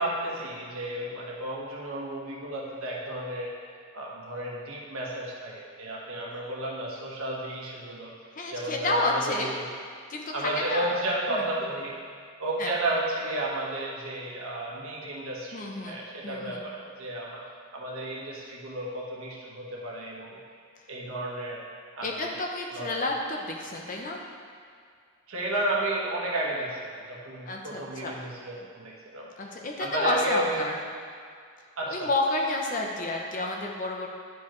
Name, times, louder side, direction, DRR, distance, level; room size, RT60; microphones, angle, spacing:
voice 1, 0.0-3.5 3.9-8.1 8.5-9.6 10.3-12.0 12.4-17.4 17.7-20.4 20.9-21.6 21.9-22.2 22.7-23.0 25.3-29.3 29.8-30.6 31.8-32.1, right 1 dB, 75° right, -4 dB, 1.4 m, -32 dB
voice 2, 8.3-9.6 10.1-11.0 11.3-11.4 12.6-12.7 15.5-16.6 22.0-24.2 27.5-28.1 29.4-30.8 31.9-34.1, left 2 dB, 35° left, 0 dB, 0.7 m, -30 dB
10.5 x 4.8 x 3.1 m, 2.2 s
head